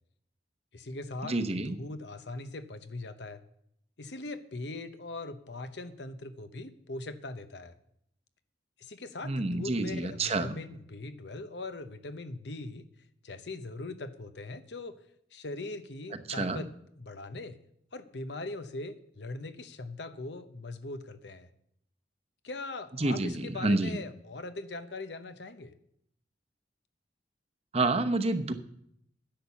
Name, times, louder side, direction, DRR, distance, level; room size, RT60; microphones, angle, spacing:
voice 1, 0.7-3.4 4.0-7.8 8.8-12.9 13.2-14.9 15.3-16.7 17.0-17.6 17.9-21.5 22.4-25.7, left 2 dB, 70° left, 10 dB, 0.9 m, -41 dB
voice 2, 1.2-1.8 9.2-10.5 16.3-16.6 23.0-24.0 27.7-28.5, right 2 dB, 35° right, 7 dB, 0.9 m, -28 dB
10.5 x 8.6 x 7.1 m, 0.72 s
head